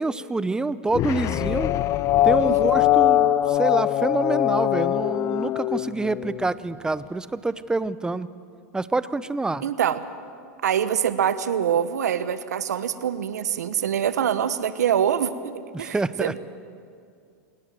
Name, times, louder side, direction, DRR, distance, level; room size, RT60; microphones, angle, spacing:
voice 1, 0.0-1.7 2.2-8.3 8.7-9.6 15.7-16.3, right 3 dB, 10° right, 16 dB, 0.7 m, -27 dB
sound 1, 0.9-6.5, left 13 dB, 35° left, 0.6 m, -22 dB
voice 2, 9.6-10.0 10.6-16.4, right 9 dB, 85° right, 13 dB, 1.1 m, -25 dB
27.0 x 18.0 x 7.6 m, 2.3 s
hypercardioid pair, 115°, 9 cm